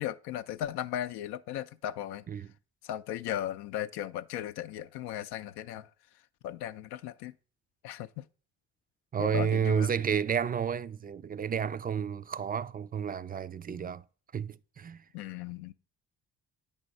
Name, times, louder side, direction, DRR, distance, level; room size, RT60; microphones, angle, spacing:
voice 1, 0.0-2.2 2.8-5.9 6.4-7.3 7.8-8.2 9.2-9.9 15.1-15.7, left 11 dB, 75° left, 0.5 m, -36 dB
voice 2, 9.1-14.0 14.3-15.0, right 7 dB, 25° right, 0.3 m, -31 dB
8.9 x 3.6 x 5.2 m
hypercardioid pair, 50°, 39 cm